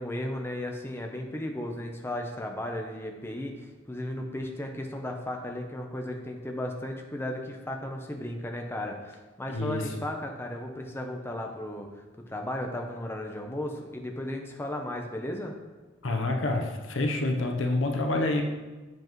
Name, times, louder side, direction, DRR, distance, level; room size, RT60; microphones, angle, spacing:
voice 1, 0.0-11.9 12.3-15.5, left 1 dB, 10° left, 2 dB, 0.7 m, -35 dB
voice 2, 9.5-9.9 16.0-18.4, left 2 dB, 65° left, 3 dB, 0.9 m, -27 dB
7.6 x 7.1 x 3.1 m, 1.2 s
head